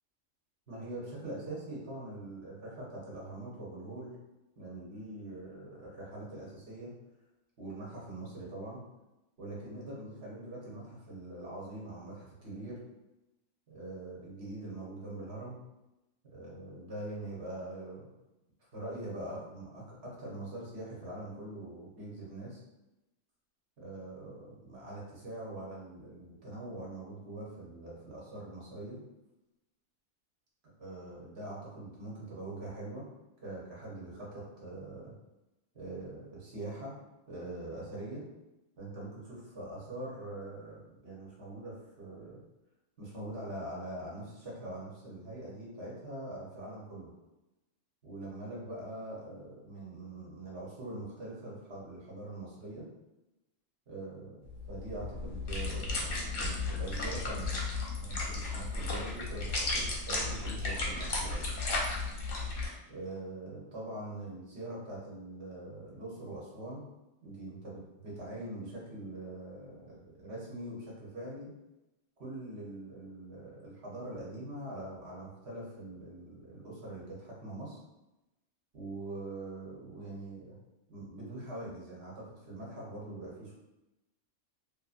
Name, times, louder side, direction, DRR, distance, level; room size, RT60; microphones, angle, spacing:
voice 1, 0.7-4.1 4.6-6.9 7.6-8.9 9.4-12.8 13.7-15.6 16.3-18.1 18.7-22.6 23.8-29.0 30.8-33.1 33.4-35.1 35.7-37.0 37.3-38.2 38.8-42.4 43.0-47.1 48.0-52.9 53.9-57.5 58.0-61.5 62.9-66.8 67.2-71.5 72.2-77.8 78.7-80.5 80.9-83.5, right 2 dB, 55° right, -5 dB, 1.0 m, -43 dB
sound 1, 54.5-62.7, left 3 dB, 55° left, 0.7 m, -34 dB
2.6 x 2.5 x 2.4 m, 0.97 s
omnidirectional pair, 1.4 m